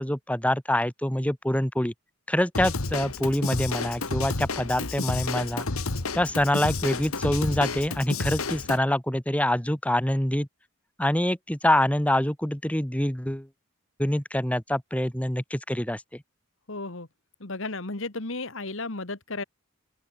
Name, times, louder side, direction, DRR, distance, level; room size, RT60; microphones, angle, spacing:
voice 1, 0.0-1.9 2.3-5.7 6.1-10.5 11.0-13.5 14.0-16.0, left 1 dB, 5° left, 1.6 m, -25 dB
Drum kit / Drum, 2.5-8.8, left 3 dB, 90° left, 1.9 m, -31 dB
voice 2, 16.7-17.1 17.4-19.4, left 3 dB, 65° left, 1.9 m, -34 dB
open air
head